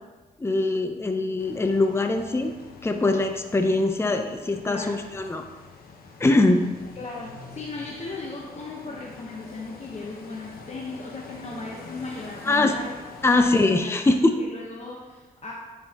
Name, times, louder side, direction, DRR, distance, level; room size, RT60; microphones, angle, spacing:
voice 1, 0.4-2.5 2.8-5.4 6.2-6.7 12.4-12.7 13.2-14.4, left 2 dB, 15° left, 6 dB, 0.6 m, -22 dB
sound 1, 1.4-13.8, left 4 dB, 75° left, 1.0 m, -46 dB
voice 2, 4.6-5.3 7.0-12.9 13.3-13.6 13.8-15.5, left 3 dB, 45° left, -2 dB, 1.0 m, -37 dB
9.5 x 5.6 x 2.9 m, 1.2 s
cardioid pair, 70°, 16 cm